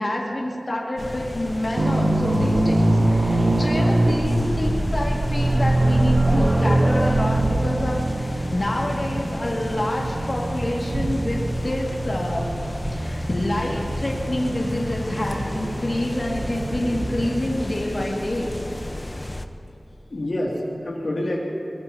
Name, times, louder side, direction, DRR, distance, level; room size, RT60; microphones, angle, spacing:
voice 1, 0.0-12.5 12.9-18.5, left 1 dB, 50° left, -3 dB, 2.2 m, -27 dB
sound 1, 1.0-19.5, left 1 dB, 30° left, 0.9 m, -34 dB
sound 2, 1.8-17.6, right 1 dB, 70° right, 1.0 m, -24 dB
sound 3, 3.7-11.5 12.7-12.8 13.2-13.3, equal, 10° right, 0.5 m, -29 dB
voice 2, 20.1-21.4, left 1 dB, 75° left, -3 dB, 2.5 m, -28 dB
23.0 x 20.5 x 2.9 m, 2.9 s
wide cardioid pair, 70°, 0 cm